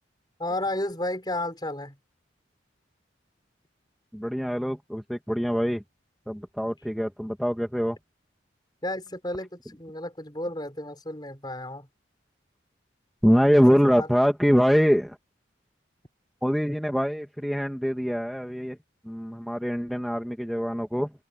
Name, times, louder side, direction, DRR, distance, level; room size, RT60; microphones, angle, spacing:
voice 1, 0.4-2.0 8.8-11.9 14.0-14.1, left 1 dB, 25° left, 5.4 m, -32 dB
voice 2, 4.1-5.8 6.3-8.0 13.2-15.2 16.4-18.8 19.0-21.1, equal, ahead, 2.0 m, -24 dB
open air
head